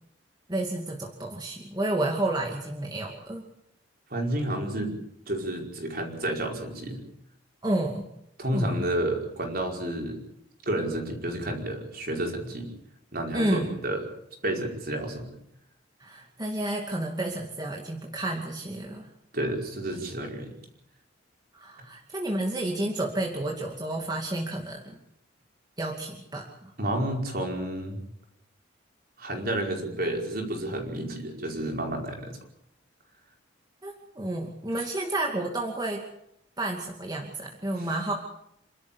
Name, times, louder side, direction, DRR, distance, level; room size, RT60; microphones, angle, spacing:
voice 1, 0.5-3.4 7.6-8.0 8.5-8.7 13.3-13.7 16.0-19.1 21.5-25.0 25.8-26.7 33.8-36.0 36.6-38.1, right 1 dB, 20° right, 0 dB, 2.4 m, -30 dB
voice 2, 4.1-5.0 5.3-7.0 8.4-10.2 10.6-12.7 13.1-14.0 14.4-15.3 19.3-20.5 26.8-28.0 29.2-32.4 37.8-37.9, right 1 dB, 50° right, 2 dB, 5.1 m, -30 dB
28.0 x 13.0 x 8.6 m, 0.78 s
head